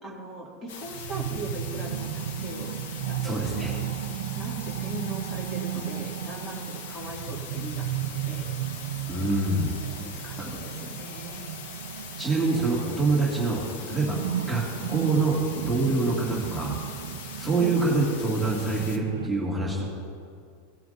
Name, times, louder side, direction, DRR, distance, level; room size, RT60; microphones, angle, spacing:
voice 1, 0.0-2.8 3.1-3.9 4.3-8.5 9.9-11.5 17.6-17.8, right 1 dB, 20° left, -2 dB, 2.3 m, -40 dB
sound 1, 0.7-19.0, left 6 dB, 75° left, 1.0 m, -42 dB
sound 2, 0.8-13.3 13.5-19.3, right 11 dB, 90° right, 0.4 m, -35 dB
voice 2, 3.2-3.7 9.1-9.7 12.2-14.2 14.4-14.6 14.9-16.8 17.4-19.9, right 3 dB, 5° right, -6 dB, 2.1 m, -25 dB
18.5 x 7.6 x 2.6 m, 2.3 s
supercardioid pair, 140°, 0 cm